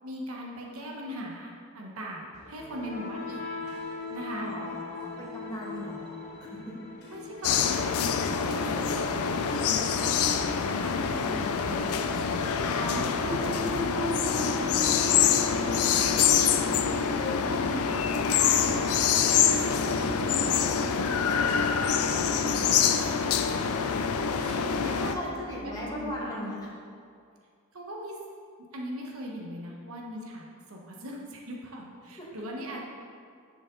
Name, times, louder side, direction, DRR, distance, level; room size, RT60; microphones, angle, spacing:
voice 1, 0.0-3.4 4.1-4.5 7.1-9.8 12.6-18.1 18.4-18.9 19.8-23.3 24.3-26.5 27.7-28.2 28.7-32.8, equal, 70° right, -1 dB, 1.1 m, -40 dB
sound 1, 2.3-14.2, left 3 dB, 50° left, 1.2 m, -42 dB
voice 2, 4.3-6.6 9.5-10.0 10.3-12.0 19.7-20.0 25.1-26.7 32.2-32.3, left 1 dB, 20° left, -5 dB, 1.7 m, -39 dB
sound 2, 7.4-25.1, left 7 dB, 80° left, 0.5 m, -26 dB
sound 3, 10.1-26.2, equal, 5° right, 0.6 m, -40 dB
10.5 x 5.2 x 3.8 m, 2.2 s
head